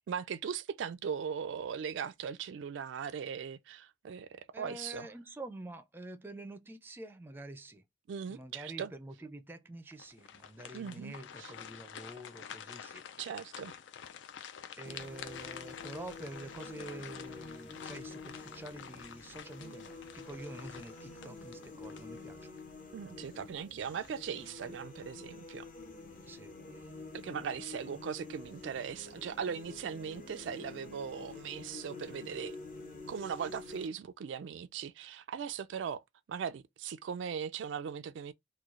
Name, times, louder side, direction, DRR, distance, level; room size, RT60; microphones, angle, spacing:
voice 1, 0.1-5.1 8.1-8.9 10.7-11.5 13.2-13.7 22.9-25.7 27.1-32.6 33.1-36.0 36.3-38.3, right 7 dB, 90° right, 0.3 m, -39 dB
voice 2, 4.5-7.8 8.3-13.0 14.8-22.6 26.3-26.9, right 1 dB, 10° right, 0.4 m, -47 dB
sound 1, 10.0-22.6 23.1-23.2 23.8-24.3, left 8 dB, 85° left, 0.4 m, -49 dB
sound 2, 14.9-33.9, left 3 dB, 45° left, 0.8 m, -48 dB
3.1 x 2.3 x 3.6 m
head